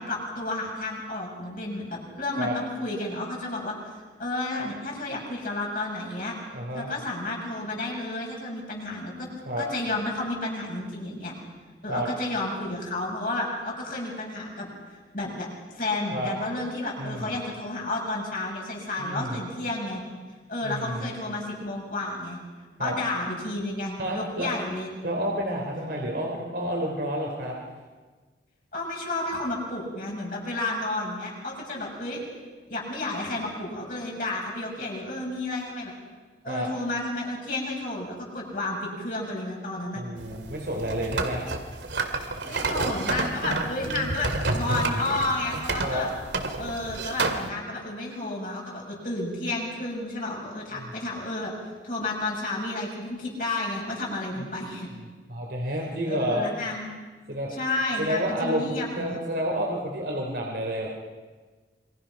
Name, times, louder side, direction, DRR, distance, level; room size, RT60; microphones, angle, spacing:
voice 1, 0.0-3.9 4.2-6.3 6.7-9.3 9.6-11.3 11.8-14.7 15.1-15.5 15.7-20.0 20.5-22.4 22.8-24.9 28.7-32.2 32.7-35.9 36.4-40.0 42.4-46.1 46.6-51.5 51.8-54.9 56.1-56.9 57.6-59.2, left 2 dB, 50° left, -2 dB, 7.0 m, -31 dB
voice 2, 6.5-6.9 9.5-9.6 11.9-12.1 16.1-16.3 17.0-17.3 19.0-19.4 20.6-21.1 22.8-22.9 24.0-24.5 25.0-27.6 36.5-36.7 39.9-41.4 45.8-46.0 50.7-50.9 54.4-54.5 55.3-56.4 57.3-57.5 58.0-60.9, equal, 65° right, -1 dB, 3.6 m, -30 dB
sound 1, 40.2-47.5, right 3 dB, 85° right, 2.4 m, -29 dB
27.0 x 24.0 x 5.9 m, 1.4 s
head